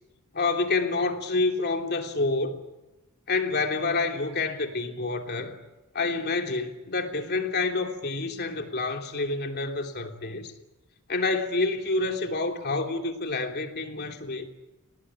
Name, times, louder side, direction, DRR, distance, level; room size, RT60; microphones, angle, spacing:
voice 1, 0.3-2.6 3.3-5.6 5.9-10.5 11.1-14.5, left 3 dB, 50° left, 4 dB, 3.0 m, -28 dB
28.5 x 19.0 x 9.8 m, 1.0 s
head